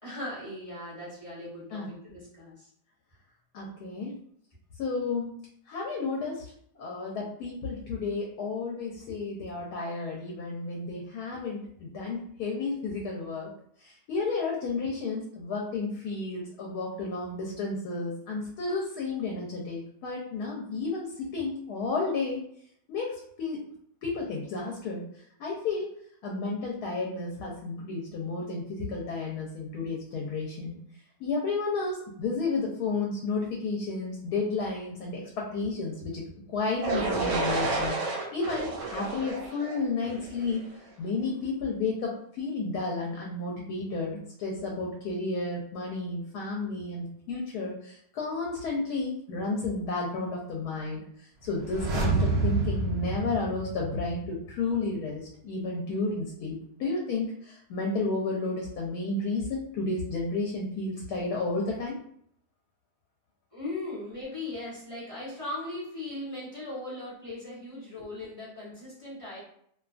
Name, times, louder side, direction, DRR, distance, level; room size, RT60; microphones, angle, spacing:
voice 1, 0.0-2.7 63.5-69.4, left 2 dB, 35° left, -8 dB, 0.6 m, -38 dB
voice 2, 3.5-4.1 4.8-5.3 5.7-6.4 6.8-13.5 13.8-22.4 22.9-23.6 24.0-25.1 25.4-25.9 26.2-30.8 31.2-38.0 38.3-40.6 41.0-51.0 51.4-62.0, left 3 dB, 75° left, -2 dB, 1.0 m, -32 dB
sound 1, 36.8-40.7, right 3 dB, 60° right, 0.8 m, -31 dB
sound 2, 51.5-54.4 54.7-54.8, right 2 dB, 90° right, 0.5 m, -28 dB
2.6 x 2.3 x 2.4 m, 0.68 s
omnidirectional pair, 1.8 m